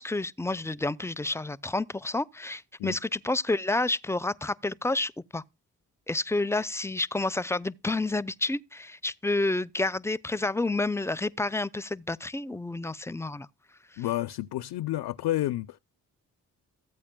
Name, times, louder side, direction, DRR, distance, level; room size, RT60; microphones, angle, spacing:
voice 1, 0.0-5.4 6.1-13.5 13.9-14.0, left 2 dB, 5° left, 0.5 m, -29 dB
voice 2, 14.0-15.8, left 15 dB, 65° left, 0.6 m, -30 dB
15.0 x 8.5 x 2.2 m
hypercardioid pair, 40°, 43 cm